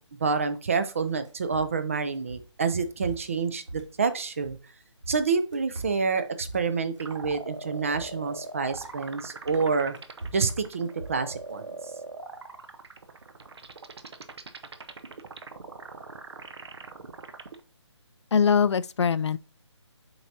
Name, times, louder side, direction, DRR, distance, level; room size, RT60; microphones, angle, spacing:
voice 1, 0.2-4.6 5.1-10.0 10.3-11.8, right 5 dB, 30° right, 0.5 m, -28 dB
sound 1, 1.2-4.7 5.0-7.6 7.9-9.0 9.4-11.6, right 2 dB, 90° right, 3.5 m, -42 dB
sound 2, 7.0-17.6, right 3 dB, 60° right, 0.9 m, -41 dB
voice 2, 18.3-19.4, left 6 dB, 65° left, 0.4 m, -22 dB
7.7 x 4.7 x 2.7 m
hypercardioid pair, 170°, 15 cm